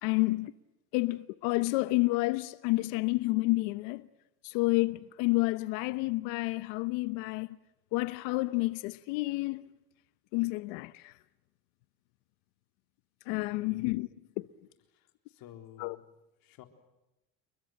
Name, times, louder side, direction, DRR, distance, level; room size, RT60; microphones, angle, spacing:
voice 1, 0.0-0.5 0.9-4.1 4.4-7.5 7.9-9.7 10.3-11.1 13.3-14.1 14.4-14.5 15.8-15.9, left 22 dB, 85° left, 1.0 m, -29 dB
voice 2, 13.5-14.0 14.9-16.0 16.4-16.6, left 12 dB, 65° left, 3.8 m, -53 dB
29.5 x 22.5 x 7.9 m
cardioid pair, 115°, 39 cm